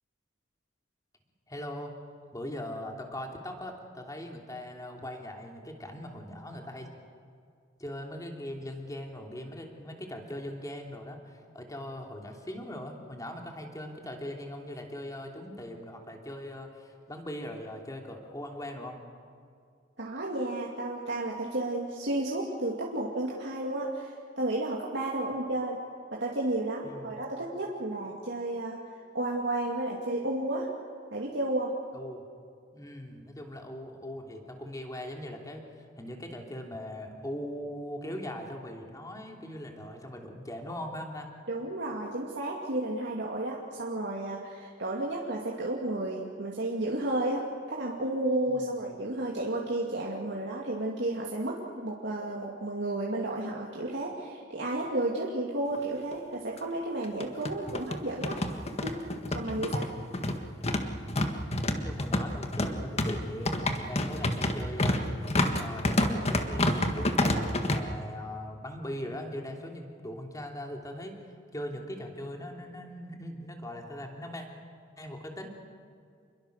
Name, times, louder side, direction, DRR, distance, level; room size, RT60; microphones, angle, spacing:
voice 1, 1.5-1.9 2.3-6.9 7.8-19.0 26.8-27.2 31.9-32.2 32.7-41.3 48.5-48.8 59.5-59.8 61.7-65.1 65.3-71.2 71.5-74.4 75.0-75.5, left 1 dB, 20° left, 2 dB, 3.0 m, -40 dB
voice 2, 20.0-25.8 26.1-28.8 29.1-30.7 31.1-31.7 41.5-58.4 58.8-59.0 59.3-59.9, right 1 dB, 65° right, -3 dB, 2.6 m, -32 dB
sound 1, 55.7-55.8 56.1-56.2 57.0-67.8, left 1 dB, 35° left, 1.7 m, -28 dB
28.5 x 22.0 x 6.7 m, 2.3 s
head